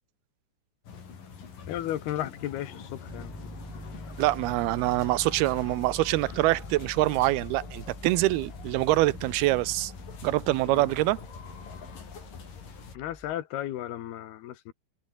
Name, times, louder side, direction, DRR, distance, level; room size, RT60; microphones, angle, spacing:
sound 1, 0.8-12.9, left 6 dB, 65° left, 5.7 m, -44 dB
voice 1, 1.7-3.5 10.7-10.8 12.9-14.7, left 12 dB, 90° left, 3.6 m, -34 dB
Piano, 3.1-13.3, equal, ahead, 4.5 m, -45 dB
voice 2, 4.2-9.9 10.2-11.2, right 18 dB, 85° right, 2.8 m, -25 dB
omnidirectional pair, 4.4 m